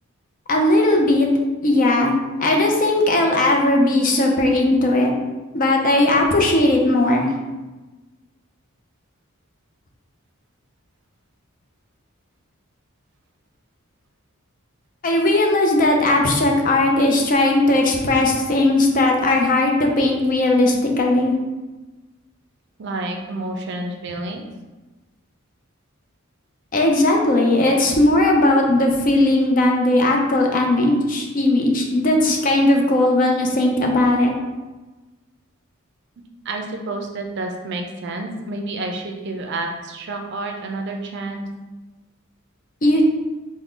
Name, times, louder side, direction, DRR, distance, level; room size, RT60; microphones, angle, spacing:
voice 1, 0.5-1.3 1.6-2.1 2.4-5.1 5.5-7.3 15.0-21.3 26.7-34.3 42.8-43.0, left 1 dB, 40° left, 1 dB, 0.5 m, -17 dB
voice 2, 22.8-24.5 36.4-41.5, right 2 dB, 55° right, 3 dB, 0.4 m, -29 dB
3.6 x 2.1 x 3.7 m, 1.2 s
head